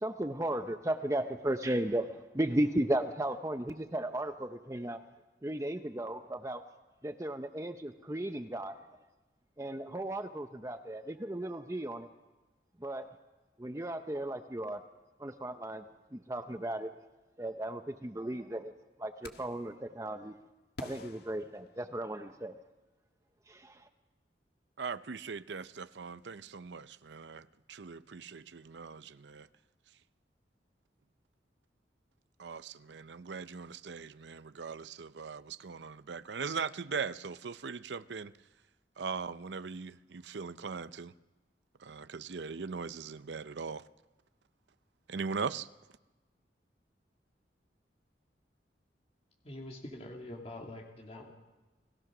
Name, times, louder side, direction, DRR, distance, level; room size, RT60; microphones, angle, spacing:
voice 1, 0.0-5.0 5.4-6.6 7.0-8.8 9.6-12.1 12.8-13.1 13.6-14.8 15.2-15.8 16.1-16.9 17.4-18.7 19.0-20.3 20.8-22.6 23.5-23.9, right 1 dB, 15° right, 0.7 m, -35 dB
sound 1, 19.2-19.7 20.8-22.3, left 2 dB, 65° left, 1.7 m, -49 dB
voice 2, 24.8-29.5 32.4-38.3 39.0-41.1 41.8-43.8 45.1-45.7, right 5 dB, 85° right, 0.6 m, -40 dB
voice 3, 49.4-51.3, left 1 dB, 35° left, 2.5 m, -45 dB
29.5 x 18.5 x 6.1 m
head